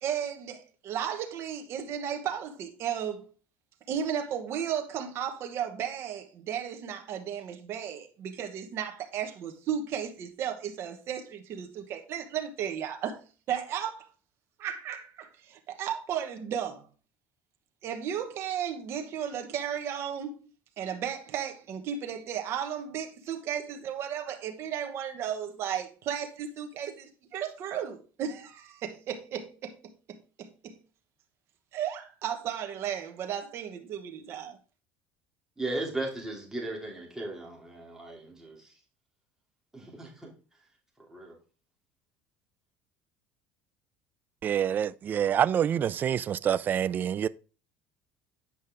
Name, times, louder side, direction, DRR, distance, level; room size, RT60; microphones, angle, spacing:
voice 1, 0.0-3.3 3.9-13.2 13.5-14.1 14.6-16.8 17.8-20.4 20.8-29.8 30.1-30.8 31.7-34.6, right 9 dB, 50° right, 1.2 m, -34 dB
voice 2, 35.6-38.7 39.7-40.3 41.1-41.4, right 2 dB, 10° right, 2.7 m, -36 dB
voice 3, 44.4-47.3, right 9 dB, 35° right, 0.3 m, -26 dB
8.6 x 5.4 x 3.5 m
cardioid pair, 120°, 5 cm